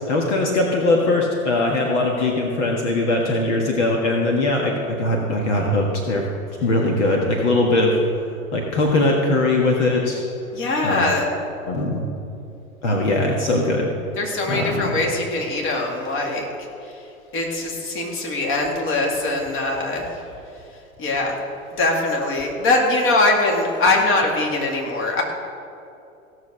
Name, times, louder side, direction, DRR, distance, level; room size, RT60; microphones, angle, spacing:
voice 1, 0.0-6.3 6.6-8.0 8.5-10.2 10.8-11.1 11.7-12.1 12.8-13.9 14.5-15.0, left 2 dB, 55° left, 0 dB, 1.6 m, -20 dB
voice 2, 10.5-11.3 14.2-16.5 17.3-20.0 21.0-21.3 21.8-25.2, left 2 dB, 30° left, 0 dB, 2.4 m, -22 dB
16.5 x 6.5 x 6.3 m, 2.7 s
figure-of-eight pair, 100°, 42 cm